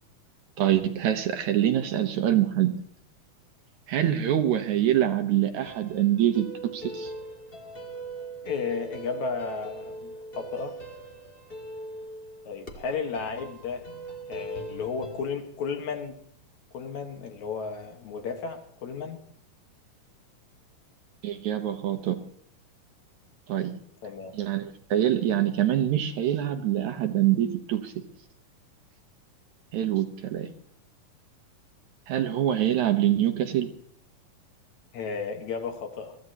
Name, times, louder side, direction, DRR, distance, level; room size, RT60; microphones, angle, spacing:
voice 1, 0.6-2.8 3.9-7.1 21.2-22.2 23.5-23.7 24.3-28.0 29.7-30.5 32.1-33.7, right 11 dB, 70° right, 7 dB, 2.1 m, -25 dB
sound 1, 5.6-15.2, right 2 dB, 25° left, 1.3 m, -40 dB
voice 2, 8.4-10.8 12.5-13.9 14.3-16.2 16.7-19.2 24.0-24.3 34.9-36.2, left 5 dB, 60° left, 5 dB, 2.6 m, -33 dB
23.5 x 15.0 x 2.9 m, 0.65 s
omnidirectional pair, 3.9 m